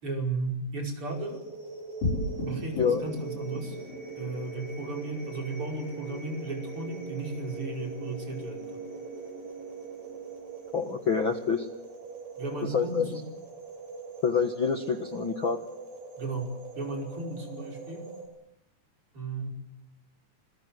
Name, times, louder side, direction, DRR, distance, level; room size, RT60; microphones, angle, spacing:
voice 1, 0.0-1.4 2.4-3.8 4.2-8.8 12.4-13.2 16.2-18.1 19.1-19.5, right 3 dB, 35° right, 2 dB, 5.9 m, -35 dB
sound 1, 1.0-18.3, right 5 dB, 85° right, 9.4 m, -42 dB
sound 2, 2.0-12.7, left 1 dB, 80° left, 9.0 m, -40 dB
voice 2, 10.7-11.7 12.6-13.1 14.2-15.6, left 6 dB, 65° left, 6 dB, 1.2 m, -27 dB
28.0 x 22.0 x 7.8 m, 0.80 s
omnidirectional pair, 4.6 m